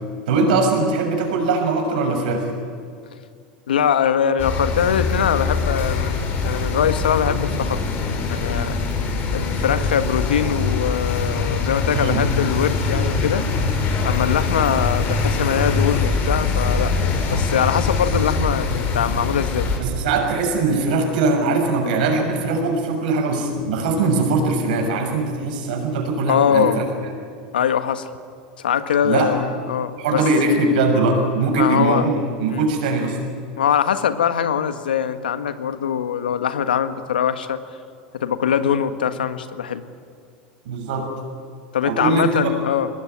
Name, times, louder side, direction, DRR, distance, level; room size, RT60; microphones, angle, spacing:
voice 1, 0.3-2.5 11.9-12.2 12.8-12.9 19.8-26.8 29.0-29.3 30.0-32.1 32.4-33.2 40.6-41.1 41.8-42.5, right 3 dB, 70° right, 2 dB, 6.7 m, -21 dB
voice 2, 3.7-7.8 8.3-8.8 9.3-13.4 14.0-16.9 17.3-19.7 23.6-23.8 26.3-26.8 27.5-28.1 28.6-30.2 31.5-32.0 32.5-32.7 33.6-37.6 38.1-39.8 41.7-42.9, left 8 dB, 85° left, 10 dB, 1.4 m, -22 dB
sound 1, 4.4-19.8, left 4 dB, 45° left, 5.5 m, -23 dB
22.5 x 19.5 x 9.7 m, 2.2 s
hypercardioid pair, 95°, 5 cm